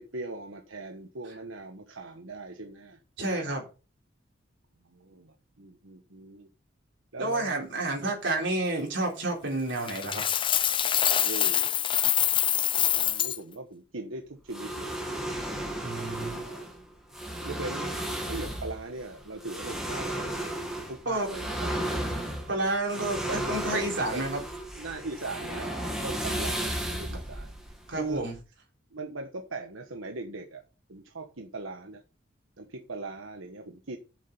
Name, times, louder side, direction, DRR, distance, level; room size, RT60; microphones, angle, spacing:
voice 1, 0.0-3.0 4.9-6.5 7.1-7.5 8.0-8.1 11.2-11.7 12.7-15.0 15.9-16.6 17.4-17.9 18.3-20.4 20.7-22.0 23.3-23.5 23.7-24.3 24.8-27.5 28.0-28.2 28.9-30.6 30.9-32.0 32.6-34.0, right 2 dB, 90° right, 1.3 m, -40 dB
voice 2, 3.2-3.6 7.2-10.2 15.8-16.4 21.1-21.3 22.5-23.2 23.5-24.4 27.9-28.3, right 2 dB, 65° right, 3.9 m, -29 dB
Coin (dropping), 9.9-13.4, left 10 dB, 25° left, 0.5 m, -25 dB
sound 1, 14.5-28.4, right 1 dB, ahead, 2.2 m, -34 dB
7.5 x 7.3 x 5.6 m
head